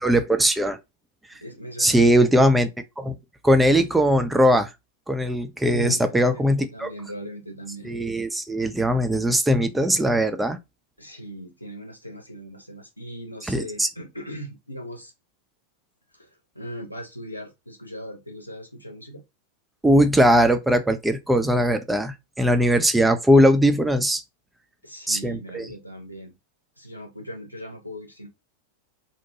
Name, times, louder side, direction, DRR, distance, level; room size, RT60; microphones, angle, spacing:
voice 1, 0.0-0.8 1.8-2.7 3.0-3.2 3.4-4.7 5.1-6.9 7.9-10.6 13.5-13.9 19.8-24.2 25.1-25.6, equal, 5° right, 0.3 m, -20 dB
voice 2, 1.4-2.0 5.7-7.9 11.0-15.1 16.1-19.2 24.8-26.4 26.8-28.3, right 1 dB, 90° left, 0.7 m, -38 dB
2.7 x 2.1 x 2.7 m
figure-of-eight pair, 90°, 0 cm